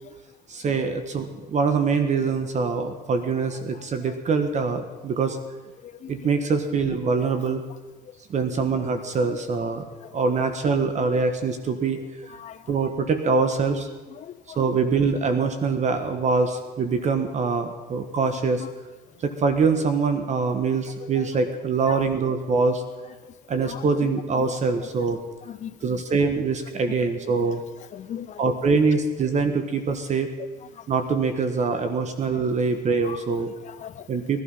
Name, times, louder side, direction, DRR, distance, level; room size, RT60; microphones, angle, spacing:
voice 1, 0.5-5.4 6.1-7.6 8.3-9.8 10.1-12.0 12.7-13.9 14.6-18.6 19.2-22.8 23.5-25.2 25.8-27.6 28.4-30.3 30.9-33.5 34.1-34.4, right 4 dB, 45° right, 8 dB, 1.4 m, -24 dB
voice 2, 5.8-6.3 8.0-8.2 8.8-8.9 9.3-9.5 10.0-10.4 12.3-12.7 14.1-14.8 18.6-18.7 21.2-21.3 21.9-22.0 23.2-23.3 23.6-24.0 24.4-24.5 24.8-24.9 25.5-26.0 27.4-27.5 27.9-28.5 30.7-30.9 32.3-32.4 33.0-33.2 33.5-34.1, left 10 dB, 45° left, 11 dB, 0.6 m, -40 dB
19.0 x 12.0 x 5.6 m, 1.3 s
cardioid pair, 110°, 17 cm